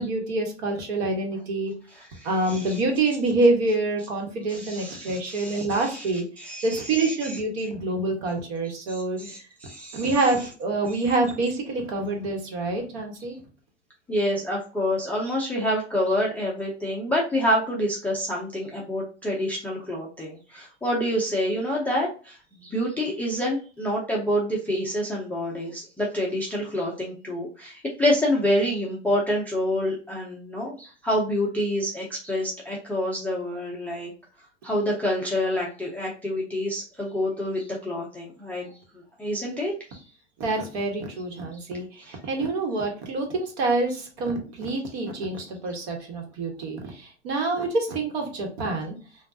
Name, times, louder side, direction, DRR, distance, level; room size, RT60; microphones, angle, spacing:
voice 1, 0.0-1.7 2.2-6.2 6.6-9.2 9.9-13.4 40.4-49.0, right 2 dB, 60° right, 2 dB, 1.2 m, -26 dB
voice 2, 1.9-2.8 4.5-7.7 8.9-10.1 14.1-34.1 34.6-40.1 42.0-42.2, equal, 5° left, -4 dB, 0.3 m, -28 dB
3.2 x 2.3 x 2.6 m, 0.36 s
hypercardioid pair, 120°, 35 cm